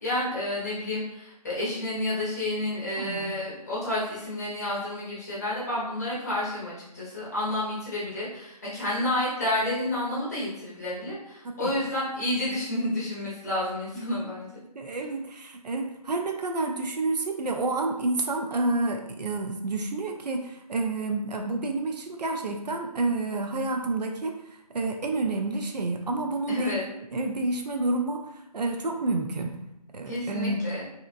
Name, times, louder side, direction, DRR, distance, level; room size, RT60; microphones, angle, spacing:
voice 1, 0.0-14.5 26.5-26.8 30.0-30.8, left 1 dB, 25° left, -8 dB, 0.8 m, -30 dB
voice 2, 3.0-3.3 11.4-11.7 14.8-24.4 24.7-26.8 27.1-29.6 29.9-30.6, right 2 dB, 85° right, 3 dB, 0.5 m, -29 dB
2.8 x 2.4 x 2.4 m, 0.83 s
figure-of-eight pair, 170°, 21 cm